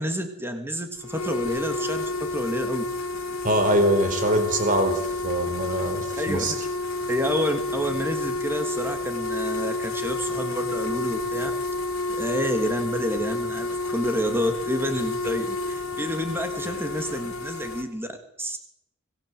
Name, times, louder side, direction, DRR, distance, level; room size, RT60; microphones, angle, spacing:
voice 1, 0.0-2.8 6.2-6.4 7.1-11.5 12.2-18.1 18.4-18.6, equal, 10° right, 6 dB, 2.8 m, -29 dB
sound 1, 1.0-17.8, left 2 dB, 70° left, 3.2 m, -30 dB
voice 2, 3.4-6.5, right 1 dB, 35° right, 8 dB, 4.5 m, -23 dB
25.5 x 19.0 x 8.2 m, 0.79 s
head